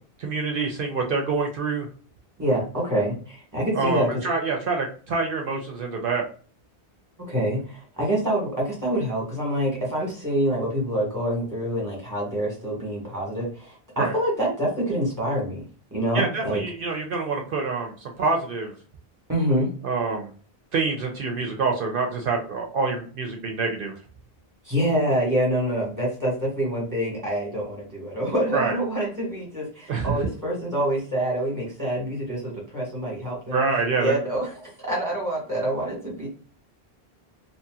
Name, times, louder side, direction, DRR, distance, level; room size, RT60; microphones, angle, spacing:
voice 1, 0.2-1.9 3.7-6.3 14.0-14.1 16.1-18.7 19.8-20.3 20.7-23.9 28.5-28.7 29.9-30.2 33.5-34.2, right 4 dB, 65° right, 2 dB, 0.7 m, -26 dB
voice 2, 2.4-4.2 7.3-16.6 19.3-19.7 24.6-33.6 34.0-36.3, right 1 dB, 20° right, -4 dB, 1.5 m, -26 dB
2.9 x 2.7 x 2.3 m, 0.41 s
omnidirectional pair, 1.0 m